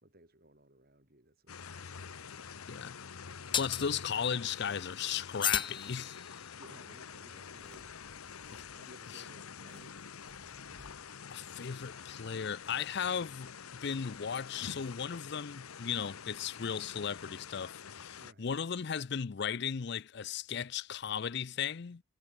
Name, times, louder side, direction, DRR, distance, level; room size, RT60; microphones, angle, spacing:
voice 1, 0.0-2.6 6.6-7.9 8.7-10.0 18.2-18.5, right 1 dB, 45° right, 3.8 m, -59 dB
sound 1, 1.5-18.3, left 6 dB, 85° left, 0.9 m, -47 dB
sound 2, 1.6-1.7 3.5-3.9 5.4-6.5, left 8 dB, 20° left, 0.8 m, -34 dB
voice 2, 3.5-6.2 8.5-8.7 9.1-9.2 11.3-22.0, left 7 dB, 50° left, 0.5 m, -36 dB
sound 3, 7.3-19.5, equal, 5° left, 5.1 m, -66 dB
head